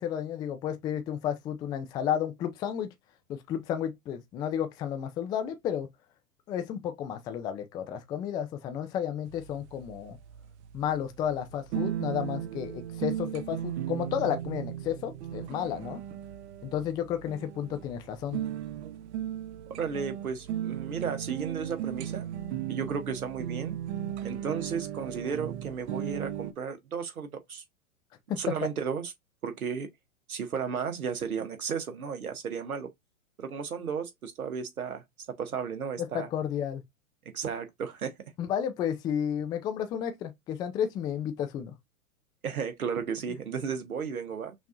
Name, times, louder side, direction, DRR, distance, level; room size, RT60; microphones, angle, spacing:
voice 1, 0.0-2.9 3.3-5.9 6.5-10.2 10.7-16.0 16.6-18.4 28.3-28.4 36.0-36.8 38.4-41.7, left 9 dB, 10° left, 0.3 m, -32 dB
sound 1, 9.3-26.5, right 11 dB, 55° right, 0.8 m, -36 dB
voice 2, 19.8-22.3 22.7-23.8 24.2-27.6 28.4-29.1 29.4-29.9 30.3-32.9 33.4-36.3 37.2-38.1 42.4-44.5, right 6 dB, 85° right, 1.5 m, -34 dB
6.0 x 2.8 x 2.5 m
hypercardioid pair, 115°, 42 cm